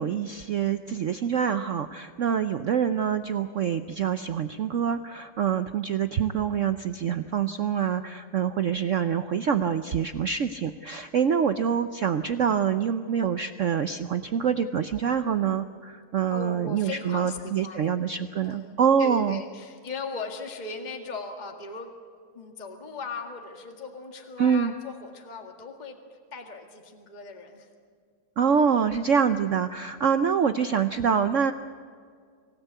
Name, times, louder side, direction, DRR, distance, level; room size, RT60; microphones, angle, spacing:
voice 1, 0.0-19.4 24.4-24.7 28.4-31.5, right 7 dB, 75° right, 10 dB, 0.7 m, -25 dB
voice 2, 16.3-17.9 18.4-18.7 19.0-21.9 22.3-27.7, left 4 dB, 20° left, 3 dB, 1.9 m, -38 dB
25.5 x 17.0 x 8.2 m, 2.1 s
omnidirectional pair, 2.2 m